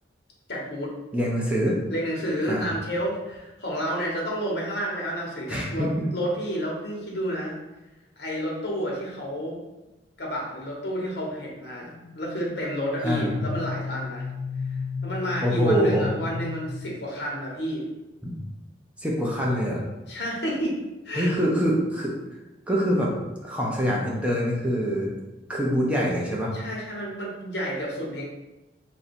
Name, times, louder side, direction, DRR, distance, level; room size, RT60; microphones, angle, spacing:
voice 1, 0.5-0.9 1.9-7.6 8.2-9.6 10.2-11.9 12.2-14.3 14.7-17.8 20.1-20.7 21.0-21.5 26.5-28.2, equal, 65° left, -2 dB, 1.1 m, -30 dB
voice 2, 1.1-1.8 2.5-2.7 5.5-6.1 13.0-13.3 15.4-16.1 18.2-18.3 19.0-19.8 21.2-22.1 22.7-23.1 23.4-25.1 25.5-26.5, equal, 5° right, -4 dB, 0.6 m, -24 dB
sound 1, 11.8-17.4, left 5 dB, 40° left, 0.3 m, -35 dB
3.1 x 2.6 x 4.3 m, 1.1 s
head